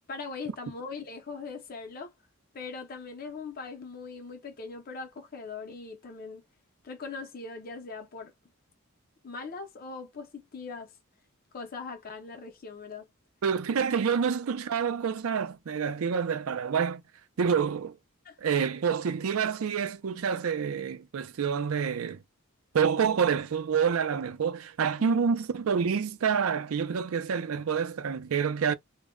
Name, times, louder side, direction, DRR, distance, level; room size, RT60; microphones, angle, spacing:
voice 1, 0.1-2.1 2.5-6.4 6.8-8.3 9.2-10.9 11.5-13.1 18.2-18.4 25.0-25.4, left 4 dB, 45° left, 0.5 m, -40 dB
voice 2, 13.4-17.0 17.4-18.0 18.4-22.2 22.7-28.7, right 6 dB, 80° right, 0.4 m, -27 dB
2.1 x 2.0 x 3.5 m
head